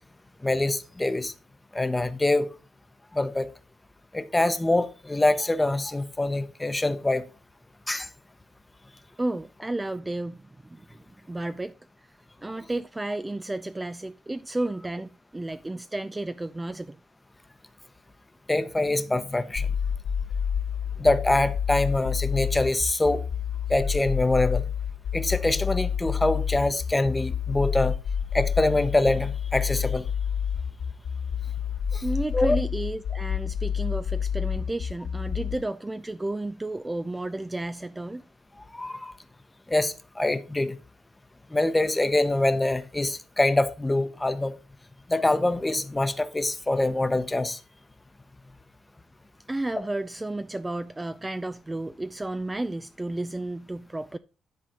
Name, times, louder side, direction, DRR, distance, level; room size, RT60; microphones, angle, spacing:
voice 1, 0.4-1.3 1.7-2.5 3.1-3.5 4.1-7.2 7.9-8.1 18.5-19.7 21.0-23.2 23.7-24.6 25.1-27.9 28.3-30.0 31.9-32.0 32.3-32.6 38.7-39.1 39.7-40.7 41.5-44.5 45.1-47.6, left 2 dB, 15° left, 0.9 m, -24 dB
voice 2, 9.2-12.1 12.4-17.0 32.0-38.3 49.5-54.2, right 2 dB, 15° right, 0.4 m, -32 dB
sound 1, 19.6-35.6, left 7 dB, 85° left, 2.4 m, -28 dB
10.5 x 4.0 x 5.6 m
cardioid pair, 90°, 0 cm